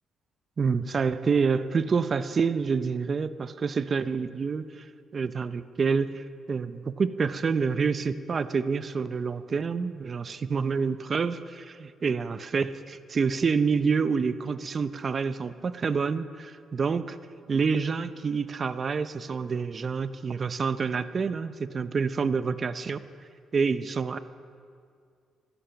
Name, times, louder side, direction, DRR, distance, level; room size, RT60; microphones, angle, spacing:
voice 1, 0.6-4.8 5.1-17.2 17.5-23.0 23.5-24.2, right 5 dB, 40° right, 13 dB, 0.6 m, -27 dB
14.0 x 13.0 x 5.7 m, 2.2 s
cardioid pair, 90°, 0 cm